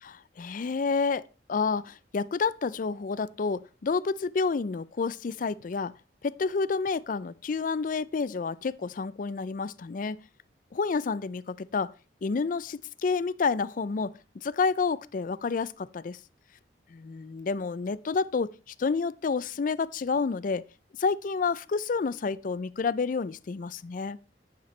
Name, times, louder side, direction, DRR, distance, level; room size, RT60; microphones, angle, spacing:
voice 1, 0.4-1.2 1.5-5.9 6.2-10.2 10.7-11.9 12.2-16.2 16.9-20.6 21.0-24.2, left 4 dB, 50° left, 0.4 m, -29 dB
10.5 x 10.0 x 3.2 m
head